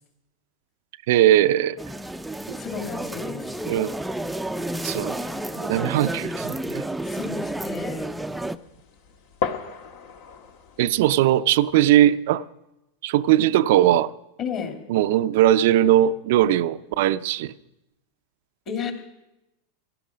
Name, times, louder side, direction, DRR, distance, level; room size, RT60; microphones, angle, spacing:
voice 1, 1.1-1.8 2.5-2.6 3.7-3.9 4.8-5.2 5.5-6.8 10.8-12.4 13.0-14.1 14.9-17.5, right 12 dB, 65° right, 0.5 m, -19 dB
sound 1, 1.8-8.6, right 1 dB, 5° right, 0.5 m, -31 dB
voice 2, 2.6-3.5 7.0-8.1 14.4-14.8 18.7-18.9, left 7 dB, 40° left, 2.8 m, -32 dB
sound 2, 4.7-11.1, left 5 dB, 70° left, 1.5 m, -38 dB
17.5 x 11.5 x 5.1 m
hypercardioid pair, 110°, 0 cm